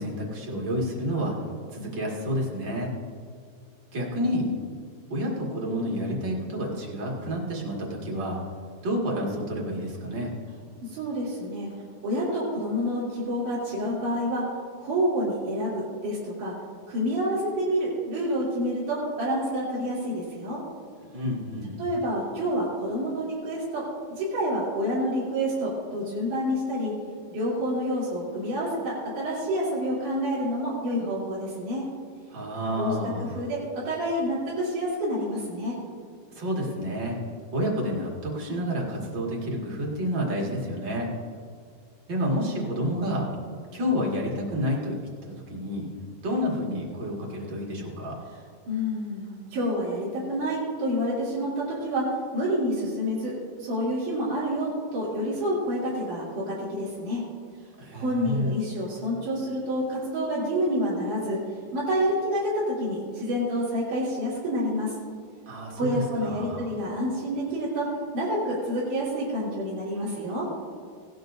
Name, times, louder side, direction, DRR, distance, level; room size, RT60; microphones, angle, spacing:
voice 1, 0.0-1.3 1.7-2.9 3.9-4.5 5.1-8.4 8.8-10.3 21.1-21.7 32.3-33.4 36.3-37.2 37.5-41.1 42.1-43.3 43.7-44.9 45.2-45.9 46.2-48.2 57.8-58.5 65.4-66.7, equal, 40° right, -3 dB, 1.7 m, -29 dB
voice 2, 10.8-11.7 12.0-14.5 14.8-16.6 16.9-20.6 21.8-27.0 27.3-31.9 32.8-35.8 48.7-57.3 57.9-61.4 61.7-65.0 65.8-70.5, equal, 80° right, -10 dB, 5.4 m, -28 dB
17.5 x 12.0 x 2.6 m, 2.2 s
omnidirectional pair, 4.8 m